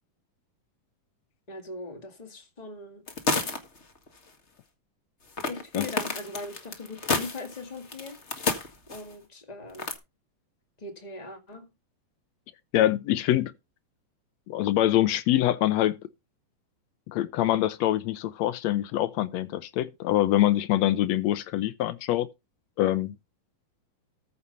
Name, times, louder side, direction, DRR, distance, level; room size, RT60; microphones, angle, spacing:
voice 1, 1.5-3.0 5.4-8.2 8.9-9.9 10.8-11.7, left 2 dB, 20° left, 1.3 m, -40 dB
sound 1, 3.1-4.1 5.4-9.1 9.7-9.9, left 3 dB, 35° left, 1.0 m, -30 dB
voice 2, 12.7-13.5 14.5-15.9 17.1-22.3 22.8-23.1, left 13 dB, 75° left, 1.6 m, -24 dB
14.0 x 5.7 x 5.5 m
omnidirectional pair, 4.0 m